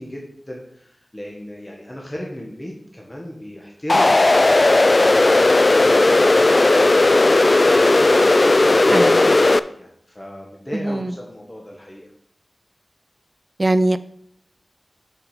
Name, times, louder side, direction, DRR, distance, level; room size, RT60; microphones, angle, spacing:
voice 1, 0.0-7.3 7.6-9.5 9.8-12.1, left 1 dB, 20° left, -2 dB, 1.5 m, -35 dB
sound 1, 3.9-9.6, left 2 dB, 45° left, 0.3 m, -15 dB
voice 2, 13.6-14.0, right 1 dB, 35° right, 12 dB, 0.4 m, -19 dB
6.3 x 6.2 x 5.0 m, 0.68 s
wide cardioid pair, 50°, 0 cm